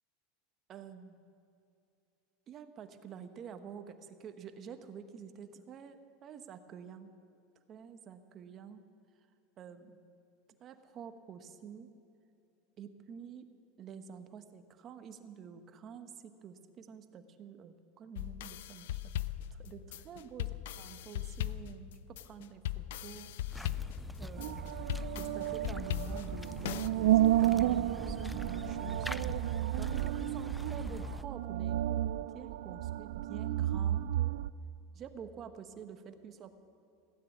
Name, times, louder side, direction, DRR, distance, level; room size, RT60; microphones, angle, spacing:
voice 1, 0.7-1.2 2.5-7.1 7.7-8.9 9.6-10.0 10.6-11.9 12.8-13.5 13.8-19.0 19.5-23.7 24.2-24.8 25.2-29.3 29.8-32.0 32.3-34.3 34.9-36.5, right 7 dB, 35° right, 8 dB, 1.1 m, -48 dB
sound 1, 18.2-26.9, left 12 dB, 85° left, 0.4 m, -39 dB
sound 2, 23.5-31.2, left 1 dB, 5° left, 0.3 m, -43 dB
sound 3, 24.4-34.5, right 14 dB, 80° right, 0.3 m, -32 dB
16.0 x 9.5 x 8.3 m, 2.7 s
supercardioid pair, 135°, 0 cm